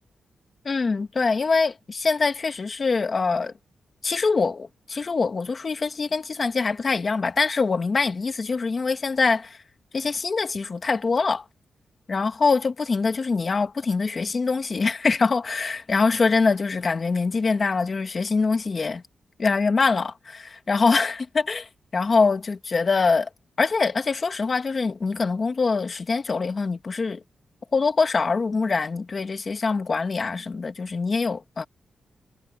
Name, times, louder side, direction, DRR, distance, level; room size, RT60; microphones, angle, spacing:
voice 1, 0.6-3.5 4.0-9.6 9.9-11.5 12.1-19.0 19.4-23.3 23.6-27.2 27.7-31.6, left 4 dB, 35° left, 2.0 m, -24 dB
wide cardioid pair, 140°, 0 cm